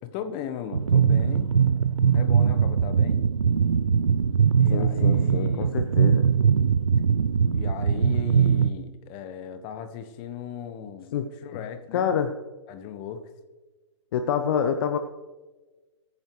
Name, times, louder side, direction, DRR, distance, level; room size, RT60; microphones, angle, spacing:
voice 1, 0.0-1.5 2.1-3.2 4.6-5.7 7.5-11.1 11.4-12.1 12.7-13.3, left 8 dB, 30° left, 9 dB, 1.4 m, -37 dB
sound 1, 0.7-8.7, right 7 dB, 80° right, 0.5 m, -21 dB
voice 2, 4.7-6.2 11.1-11.3 11.5-11.6 11.9-12.3 14.1-15.0, left 8 dB, 50° left, 8 dB, 0.9 m, -26 dB
22.5 x 9.7 x 3.2 m, 1.2 s
figure-of-eight pair, 120°, 16 cm